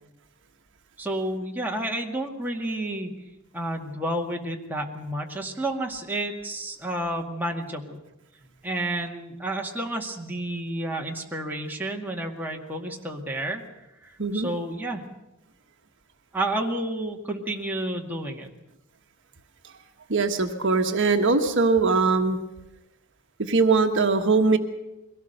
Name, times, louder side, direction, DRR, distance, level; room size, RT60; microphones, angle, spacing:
voice 1, 1.0-3.1 3.5-8.0 8.6-13.6 14.0-15.0 16.3-18.5, right 1 dB, 10° right, 0 dB, 2.0 m, -30 dB
voice 2, 14.2-14.5 20.1-22.4 23.5-24.6, right 4 dB, 60° right, 5 dB, 1.3 m, -21 dB
23.0 x 17.5 x 6.8 m, 0.95 s
head